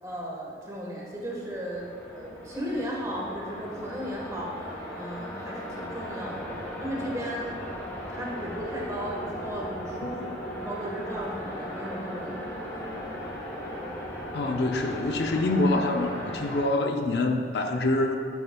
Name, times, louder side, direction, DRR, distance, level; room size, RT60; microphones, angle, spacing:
voice 1, 0.0-7.5 8.1-12.4 12.8-12.9, equal, 20° right, -3 dB, 1.3 m, -35 dB
sound 1, 1.0-16.6, equal, 10° left, 1.5 m, -37 dB
voice 2, 14.3-18.2, left 2 dB, 65° left, 4 dB, 0.6 m, -26 dB
10.0 x 8.7 x 2.3 m, 2.3 s
head